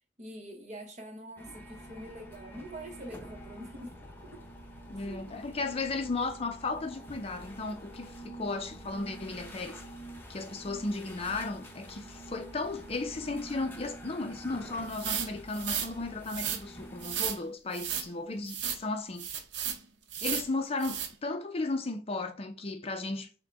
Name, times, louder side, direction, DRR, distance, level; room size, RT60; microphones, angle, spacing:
voice 1, 0.2-4.0 4.3-4.5 5.0-5.4, right 1 dB, 40° right, 1.0 m, -45 dB
sound 1, 1.4-17.2, right 1 dB, 10° left, 0.8 m, -47 dB
voice 2, 4.9-9.8 10.3-19.4 20.2-23.3, left 3 dB, 30° left, 0.5 m, -35 dB
sound 2, 14.9-15.9 16.3-16.6 17.0-17.4 17.7-18.1 18.5-18.8 19.2-19.8 20.1-20.5 20.8-21.1, right 8 dB, 75° right, 0.7 m, -34 dB
6.4 x 2.2 x 3.3 m
head